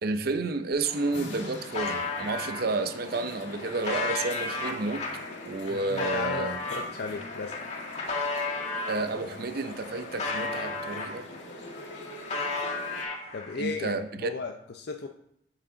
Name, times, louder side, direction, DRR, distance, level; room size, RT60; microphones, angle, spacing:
voice 1, 0.0-5.1 5.5-6.6 8.9-11.3 13.6-14.3, right 3 dB, 55° right, 0.6 m, -31 dB
sound 1, 0.7-0.8 1.1-2.6 3.2-9.0 9.5-11.4 11.7-13.6, left 3 dB, 40° left, 2.1 m, -34 dB
sound 2, 0.8-13.0, left 1 dB, 85° left, 1.8 m, -43 dB
voice 2, 5.7-7.6 13.3-15.1, left 4 dB, 60° left, 0.6 m, -36 dB
8.5 x 8.4 x 3.9 m
head